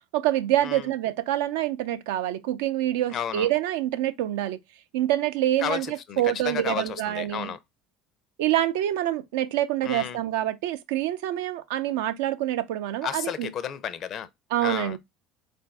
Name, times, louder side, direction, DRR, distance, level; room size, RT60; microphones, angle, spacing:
voice 1, 0.1-4.6 4.9-7.5 8.4-13.5 14.5-15.0, right 13 dB, 80° right, 0.4 m, -26 dB
voice 2, 3.1-3.5 5.6-7.6 9.8-10.2 13.0-14.3 14.6-15.0, left 8 dB, 50° left, 0.5 m, -32 dB
3.9 x 2.5 x 3.3 m
hypercardioid pair, 75°, 0 cm